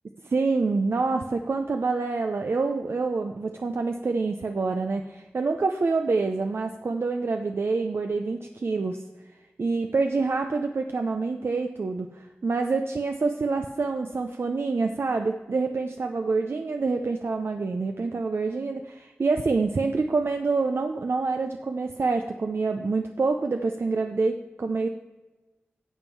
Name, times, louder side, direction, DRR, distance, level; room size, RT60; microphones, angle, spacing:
voice 1, 0.2-9.0 9.6-24.9, right 3 dB, 70° right, 5 dB, 0.6 m, -26 dB
11.0 x 7.2 x 4.6 m, 1.1 s
cardioid pair, 50°, 4 cm